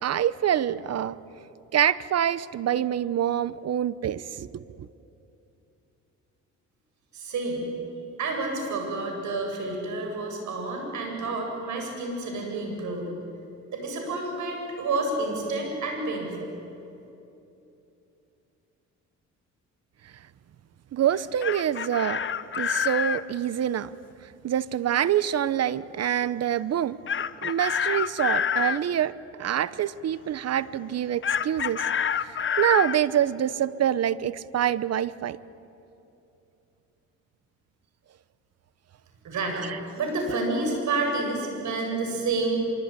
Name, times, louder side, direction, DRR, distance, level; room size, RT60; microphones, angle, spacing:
voice 1, 0.0-1.2 1.7-4.9 20.9-22.2 22.5-23.9 24.2-27.0 27.4-29.1 29.4-31.9 32.1-35.4 39.6-39.7, right 10 dB, 55° right, 17 dB, 0.9 m, -26 dB
voice 2, 7.1-7.7 8.2-13.1 13.7-16.5 39.2-39.6 39.9-42.5, right 3 dB, 70° right, 2 dB, 7.9 m, -29 dB
Chicken rooster, 21.2-23.2 27.1-28.8 31.2-33.0, left 8 dB, 40° left, 1.0 m, -27 dB
25.0 x 24.0 x 9.9 m, 2.8 s
cardioid pair, 90°, 30 cm